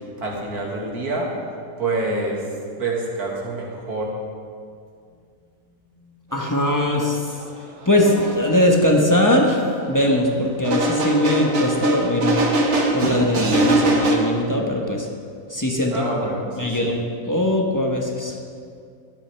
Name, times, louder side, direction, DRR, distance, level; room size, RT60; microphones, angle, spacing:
voice 1, 0.2-1.3 1.8-2.5 2.8-4.1 15.9-16.9, right 2 dB, 85° right, -2 dB, 2.4 m, -27 dB
voice 2, 6.3-7.2 7.9-9.6 9.9-12.4 12.9-15.1 15.5-16.2 16.6-18.4, left 1 dB, 15° left, 0 dB, 0.9 m, -20 dB
sound 1, 7.4-7.5 8.0-8.4 9.5-9.6 10.6-14.2, right 2 dB, 50° right, 1.4 m, -21 dB
14.5 x 11.5 x 3.4 m, 2.3 s
omnidirectional pair, 1.6 m